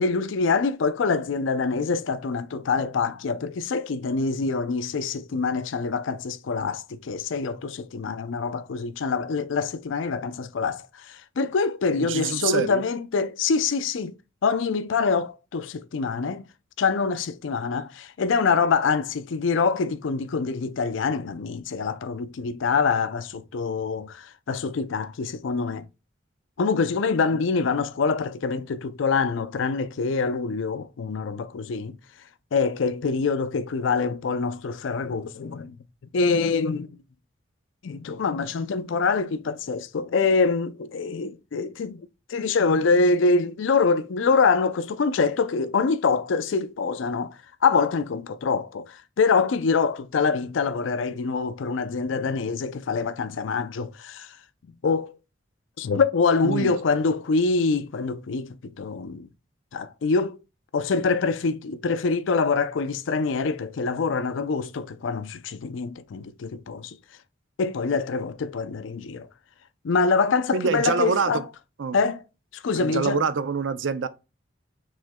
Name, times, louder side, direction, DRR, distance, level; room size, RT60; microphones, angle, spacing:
voice 1, 0.0-14.1 14.4-16.4 16.8-25.9 26.6-32.0 32.5-35.7 36.1-36.9 37.8-47.3 47.6-54.3 54.8-55.2 55.8-59.3 59.7-60.4 60.7-67.0 67.6-69.3 69.8-71.4 71.9-72.2 72.6-73.2, left 4 dB, 90° left, 0.4 m, -25 dB
voice 2, 11.9-12.8 27.3-27.4 56.4-56.7 70.5-71.4 71.8-72.0 72.8-74.1, right 5 dB, 85° right, 0.5 m, -26 dB
6.1 x 3.8 x 2.2 m
head